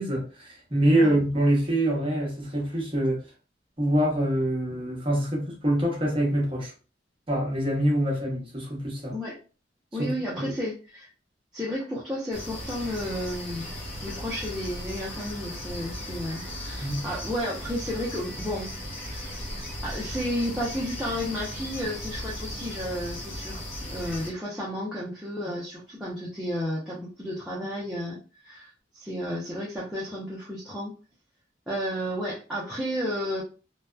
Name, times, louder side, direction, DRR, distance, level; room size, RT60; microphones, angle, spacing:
voice 1, 0.0-3.2 3.8-6.7 7.3-9.1 10.0-10.1 10.4-10.5 16.8-17.1, right 1 dB, 30° right, 0.8 m, -25 dB
voice 2, 9.9-11.1 11.5-13.7 14.0-18.7 19.0-19.3 19.8-23.6 23.9-28.7 28.9-30.9 31.7-33.4, equal, 5° right, 0.5 m, -32 dB
sound 1, 12.3-24.3, equal, 35° left, 1.0 m, -37 dB
2.7 x 2.1 x 2.2 m
head